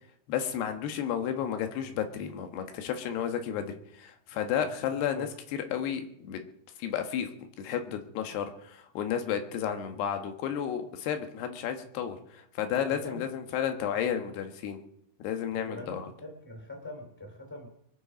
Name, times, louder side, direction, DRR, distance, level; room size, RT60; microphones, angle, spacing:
voice 1, 0.3-6.4 6.8-7.3 7.6-14.8 15.2-16.1, left 9 dB, 90° left, 6 dB, 3.4 m, -32 dB
voice 2, 12.7-13.3 15.6-17.7, left 1 dB, 5° left, 2 dB, 3.0 m, -43 dB
23.5 x 9.9 x 5.2 m, 0.75 s
omnidirectional pair, 4.6 m